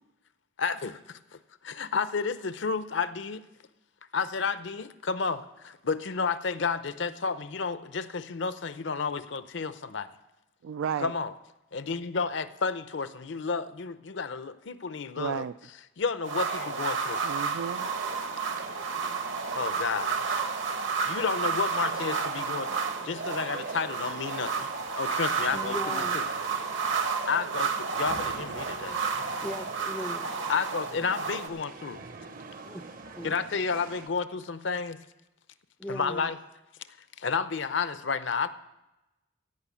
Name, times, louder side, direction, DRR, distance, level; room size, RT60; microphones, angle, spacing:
voice 1, 0.6-1.2 1.6-3.4 4.1-10.1 11.0-11.3 11.7-15.5 16.0-17.2 19.5-20.2 21.1-22.7 23.0-26.3 27.2-29.0 30.5-32.0 33.2-35.0 35.9-36.4 37.2-38.5, left 5 dB, 60° left, 13 dB, 0.6 m, -31 dB
voice 2, 10.6-11.1 15.2-15.5 17.2-17.9, right 7 dB, 85° right, 13 dB, 0.3 m, -33 dB
sound 1, 16.2-31.5, right 5 dB, 65° right, 1.2 m, -31 dB
sound 2, 17.5-34.1, right 3 dB, 45° right, 0.8 m, -46 dB
voice 3, 25.5-26.2 29.4-30.4 32.6-32.8 33.1-33.3 35.8-36.3, equal, 5° left, 6 dB, 0.4 m, -38 dB
16.0 x 5.6 x 8.4 m, 0.98 s
head